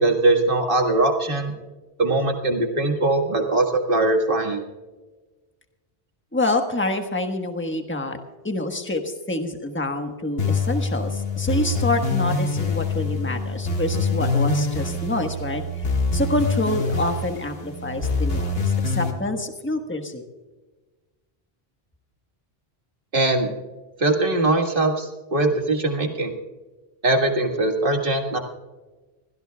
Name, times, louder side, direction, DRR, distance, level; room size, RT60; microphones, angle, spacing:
voice 1, 0.0-1.5 2.0-4.6 23.1-23.5 24.0-26.3 27.0-28.4, right 2 dB, 55° right, 3 dB, 1.9 m, -21 dB
voice 2, 6.3-8.2 8.4-20.2, left 2 dB, 10° left, 5 dB, 1.3 m, -27 dB
sound 1, 10.4-19.1, left 3 dB, 65° left, 2.0 m, -25 dB
25.0 x 16.5 x 2.3 m, 1.2 s
omnidirectional pair, 1.1 m